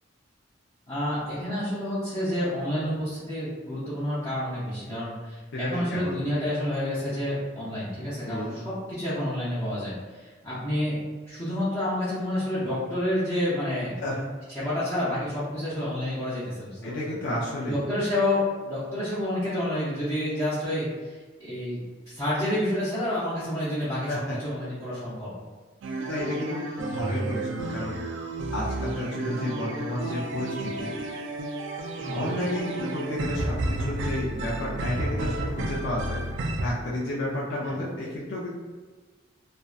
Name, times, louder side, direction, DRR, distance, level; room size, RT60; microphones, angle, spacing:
voice 1, 0.9-11.0 11.3-14.0 14.5-17.1 17.7-21.8 22.1-25.3 32.0-32.3 37.6-37.7, left 1 dB, 15° left, -12 dB, 0.6 m, -29 dB
voice 2, 5.5-6.2 8.2-8.6 14.0-14.2 16.8-17.8 24.1-24.4 26.1-28.0 28.5-30.9 32.1-36.2 36.6-38.5, left 1 dB, 70° left, -6 dB, 0.4 m, -31 dB
sound 1, 25.8-36.6, right 2 dB, 75° right, 0.3 m, -32 dB
2.6 x 2.1 x 2.3 m, 1.4 s
head